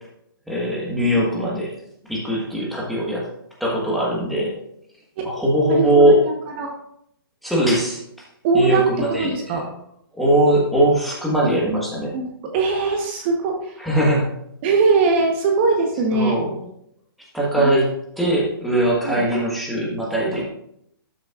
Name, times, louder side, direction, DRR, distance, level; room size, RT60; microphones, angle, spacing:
voice 1, 0.5-1.7 2.1-3.3 3.6-4.5 5.2-6.2 7.4-8.0 8.5-9.3 10.1-12.1 13.8-14.3 16.1-16.5 17.3-20.4, right 1 dB, ahead, -5 dB, 1.4 m, -20 dB
voice 2, 5.7-6.7 8.4-8.9 9.2-9.6 11.4-11.5 12.1-13.8 14.6-16.4 17.6-17.8 19.0-19.3, right 4 dB, 30° right, 2 dB, 1.0 m, -21 dB
12.5 x 6.3 x 2.4 m, 0.76 s
hypercardioid pair, 160°, 12 cm